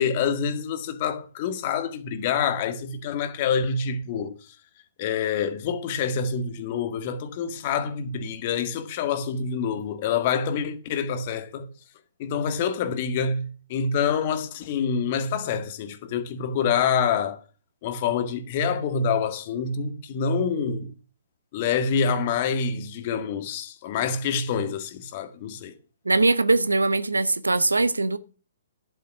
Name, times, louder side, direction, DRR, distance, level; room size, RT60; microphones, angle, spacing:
voice 1, 0.0-4.3 5.0-11.7 12.2-17.4 17.8-20.9 21.5-25.8, left 6 dB, 40° left, 1.8 m, -26 dB
voice 2, 26.0-28.2, right 3 dB, 85° right, 0.8 m, -21 dB
11.5 x 8.0 x 6.1 m
figure-of-eight pair, 125°, 0 cm